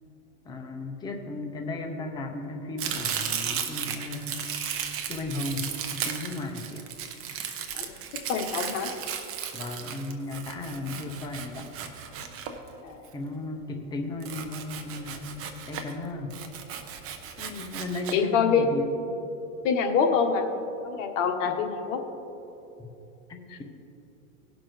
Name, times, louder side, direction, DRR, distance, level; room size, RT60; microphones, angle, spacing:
voice 1, 0.4-4.4 5.1-6.9 9.5-11.7 13.1-15.3 15.7-16.4 17.6-18.9 21.4-21.6 22.8-22.9 23.3-23.6, left 2 dB, 10° left, 3 dB, 0.6 m, -35 dB
Domestic sounds home sounds, 2.8-13.1 14.2-16.0 16.3-18.1, right 8 dB, 35° right, 0.8 m, -35 dB
voice 2, 8.3-8.9 12.8-13.0 17.4-17.6 18.1-18.8 19.6-20.5 20.8-22.0, left 6 dB, 60° left, 4 dB, 1.3 m, -25 dB
17.5 x 5.9 x 3.3 m, 2.9 s
supercardioid pair, 135°, 42 cm